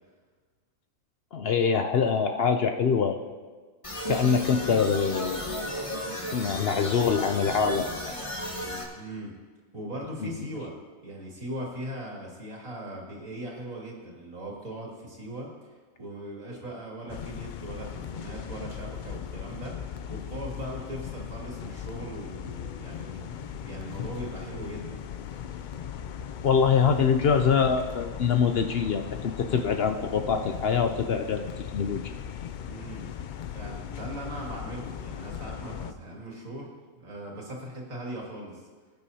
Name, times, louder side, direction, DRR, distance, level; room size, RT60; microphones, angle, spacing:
voice 1, 1.3-3.2 4.1-5.4 6.3-7.9 10.2-10.3 26.4-32.1, left 6 dB, 60° left, 7 dB, 0.7 m, -24 dB
sound 1, 3.8-8.8, equal, 25° left, 1.5 m, -34 dB
voice 2, 8.9-9.3 9.7-10.7 11.0-19.8 20.1-25.0 32.6-33.1 33.5-38.6, right 1 dB, 80° right, -3 dB, 2.8 m, -39 dB
sound 2, 17.1-35.9, left 8 dB, 85° left, 0.4 m, -38 dB
20.5 x 9.1 x 2.8 m, 1.4 s
omnidirectional pair, 1.4 m